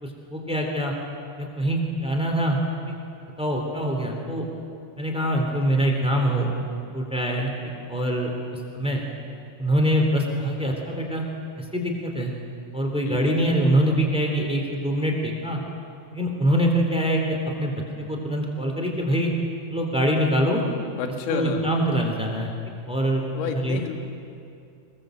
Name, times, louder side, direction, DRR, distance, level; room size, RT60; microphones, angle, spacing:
voice 1, 0.0-0.9 1.4-2.6 2.9-3.0 3.4-4.4 5.0-6.5 6.9-7.5 7.9-8.3 8.7-9.0 9.6-11.2 11.7-12.3 12.7-15.6 16.1-19.3 19.7-20.7 21.3-22.5 22.9-23.8, right 1 dB, ahead, 1 dB, 2.1 m, -24 dB
voice 2, 21.0-21.7 23.3-24.0, left 7 dB, 65° left, 4 dB, 3.5 m, -29 dB
23.5 x 20.5 x 7.8 m, 2.5 s
omnidirectional pair, 5.2 m